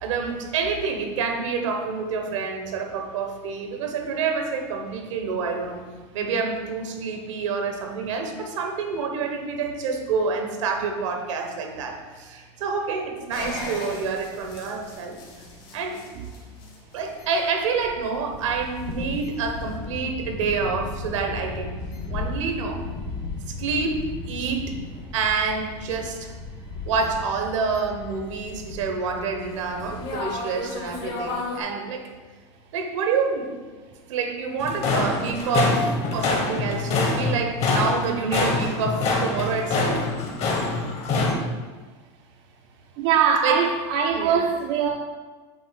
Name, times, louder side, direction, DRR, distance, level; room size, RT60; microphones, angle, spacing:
voice 1, 0.0-5.8 6.1-15.2 15.7-16.0 16.9-21.8 22.1-22.8 23.6-24.7 25.1-26.3 26.8-32.1 32.7-33.5 34.1-40.1 43.4-43.7 44.1-44.4, right 5 dB, 85° right, 3 dB, 1.2 m, -27 dB
sound 1, 13.3-31.6, left 3 dB, 65° left, 1.9 m, -35 dB
sound 2, 34.6-41.3, left 3 dB, 40° left, 1.3 m, -25 dB
voice 2, 43.0-44.9, right 7 dB, 60° right, 2 dB, 0.6 m, -21 dB
7.1 x 2.9 x 5.9 m, 1.3 s
supercardioid pair, 120°, 16 cm